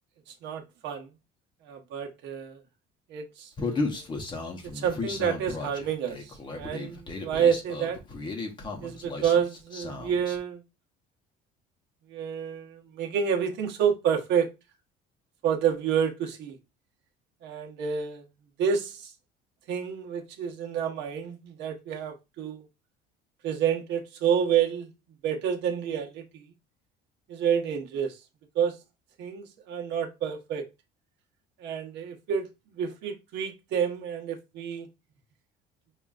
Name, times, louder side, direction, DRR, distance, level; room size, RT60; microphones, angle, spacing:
voice 1, 0.3-1.1 1.6-2.6 3.1-4.1 4.7-8.0 8.8-10.6 12.1-14.5 15.4-16.6 17.4-18.2 18.6-19.1 19.7-22.7 23.4-24.9 25.2-26.2 27.3-28.2 28.5-28.8 29.2-30.7 31.6-34.9, right 8 dB, 65° right, 0.9 m, -29 dB
Human voice, 3.6-10.4, left 3 dB, 25° left, 0.8 m, -35 dB
5.4 x 2.4 x 2.4 m
cardioid pair, 140°, 20 cm